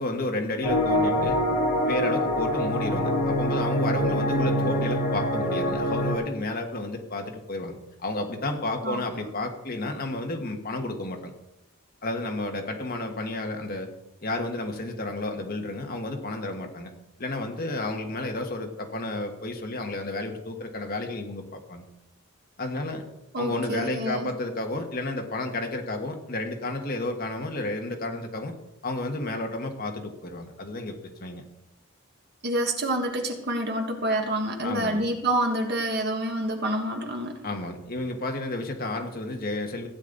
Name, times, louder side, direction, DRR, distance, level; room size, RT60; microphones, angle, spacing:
voice 1, 0.0-1.4 1.8-11.3 12.0-13.9 14.2-16.9 17.2-21.8 22.6-23.0 23.4-28.5 28.8-31.4 34.6-35.1 37.4-39.9, left 2 dB, 40° left, 3 dB, 1.6 m, -31 dB
sound 1, 0.6-6.2, left 1 dB, 85° left, 4.0 m, -25 dB
voice 2, 23.3-24.3 32.4-37.4, right 1 dB, 45° right, 3 dB, 1.6 m, -27 dB
15.5 x 9.6 x 4.0 m, 0.86 s
head